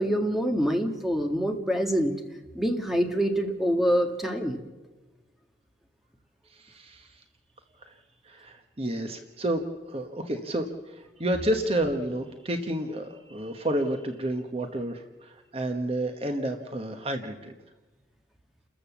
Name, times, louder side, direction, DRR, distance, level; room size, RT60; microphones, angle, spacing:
voice 1, 0.0-2.2 2.5-4.6, equal, ahead, 3 dB, 1.8 m, -25 dB
voice 2, 6.5-7.2 7.8-7.9 8.2-9.6 9.9-17.5, right 1 dB, 30° right, 6 dB, 1.2 m, -30 dB
29.5 x 14.0 x 7.2 m, 1.2 s
head